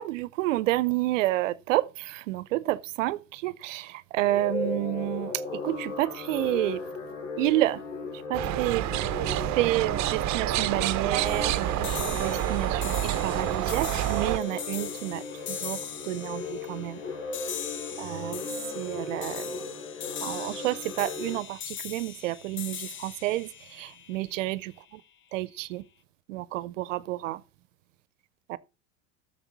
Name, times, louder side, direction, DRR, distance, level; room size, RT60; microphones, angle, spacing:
voice 1, 0.0-6.8 7.4-7.8 8.3-8.9 9.5-15.8 16.1-17.0 18.0-18.4 18.7-19.7 20.2-24.7 25.3-25.8 26.3-27.4 28.5-28.6, right 17 dB, 85° right, 0.7 m, -30 dB
sound 1, 4.2-21.4, left 3 dB, 85° left, 3.3 m, -37 dB
sound 2, 8.3-14.4, right 15 dB, 50° right, 0.8 m, -28 dB
sound 3, 11.2-24.7, left 8 dB, 30° left, 0.9 m, -40 dB
13.5 x 6.7 x 4.0 m
hypercardioid pair, 90°, 37 cm